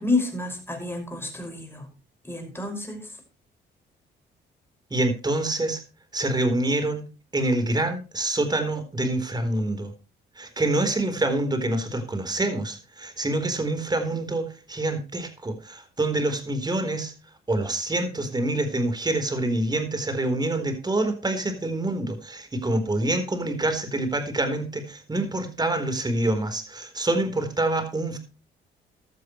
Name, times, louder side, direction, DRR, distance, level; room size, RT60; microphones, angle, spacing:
voice 1, 0.0-1.9 2.2-3.1, left 2 dB, 10° left, 4 dB, 5.9 m, -29 dB
voice 2, 4.9-5.8 6.1-7.1 7.3-9.9 10.4-17.1 17.5-28.2, right 2 dB, 20° right, 8 dB, 4.1 m, -26 dB
15.5 x 12.5 x 3.2 m, 0.33 s
cardioid pair, 90°, 20 cm